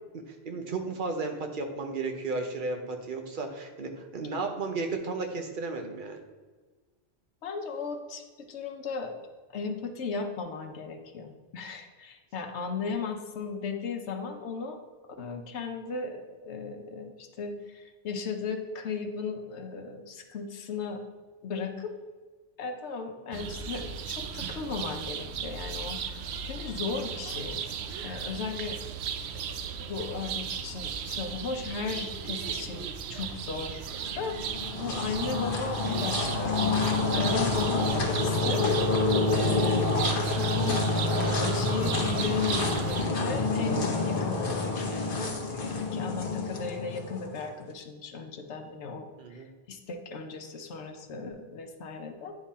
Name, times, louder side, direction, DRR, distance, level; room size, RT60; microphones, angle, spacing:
voice 1, 0.3-6.2 49.2-49.5, right 3 dB, 50° right, 5 dB, 1.0 m, -34 dB
voice 2, 7.4-9.3 9.5-14.8 15.2-21.0 21.4-21.9 22.6-27.6 28.0-28.8 29.5-38.7 39.3-52.3, left 5 dB, 85° left, 4 dB, 1.0 m, -36 dB
sound 1, 23.3-43.1, right 7 dB, 75° right, 0.8 m, -36 dB
sound 2, 34.2-47.5, left 3 dB, 55° left, 1.1 m, -28 dB
9.8 x 3.8 x 4.2 m, 1.3 s
omnidirectional pair, 1.1 m